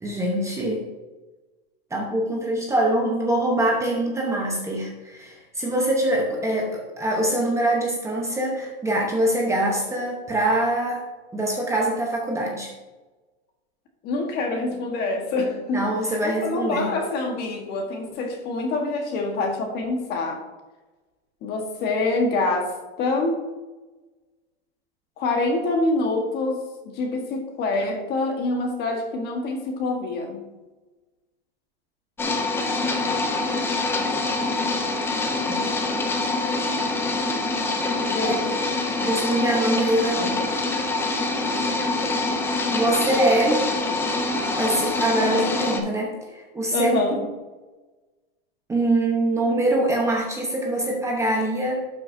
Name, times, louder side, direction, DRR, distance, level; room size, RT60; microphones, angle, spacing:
voice 1, 0.0-0.8 1.9-11.0 11.3-12.7 15.7-16.9 35.5-35.6 38.2-38.6 39.0-40.4 42.7-43.7 44.6-47.2 48.7-51.9, right 1 dB, 10° right, -1 dB, 0.9 m, -24 dB
voice 2, 14.0-15.9 16.2-20.4 21.4-22.7 23.0-23.4 25.2-30.5 38.1-38.4 41.2-41.4 46.7-47.2, left 2 dB, 30° left, 3 dB, 1.4 m, -26 dB
sound 1, 32.2-45.8, left 2 dB, 10° left, 0.4 m, -25 dB
12.0 x 5.9 x 2.7 m, 1.2 s
supercardioid pair, 150°, 31 cm